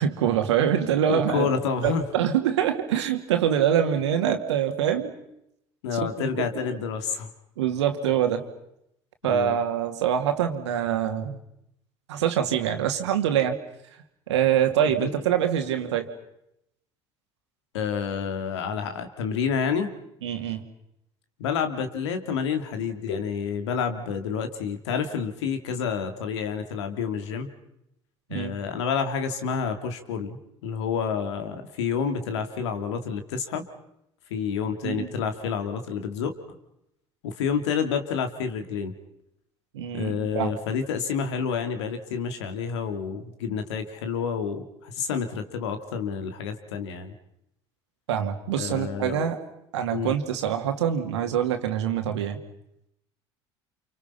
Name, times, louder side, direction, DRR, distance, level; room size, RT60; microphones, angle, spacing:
voice 1, 0.0-1.5 1.8-5.1 5.9-6.5 7.6-8.5 9.2-11.4 12.1-13.6 14.3-16.1 20.2-20.6 28.3-28.5 34.8-35.1 39.7-40.5 48.1-49.4 49.7-52.4, right 9 dB, 75° right, 6 dB, 2.5 m, -25 dB
voice 2, 1.1-2.0 5.8-7.3 9.2-9.6 14.9-15.1 17.7-19.9 21.4-27.5 28.3-33.6 34.3-36.4 37.2-38.9 39.9-47.1 48.6-49.3 49.9-50.1, left 6 dB, 75° left, 8 dB, 2.7 m, -29 dB
29.5 x 28.0 x 5.7 m, 0.79 s
hypercardioid pair, 65°, 15 cm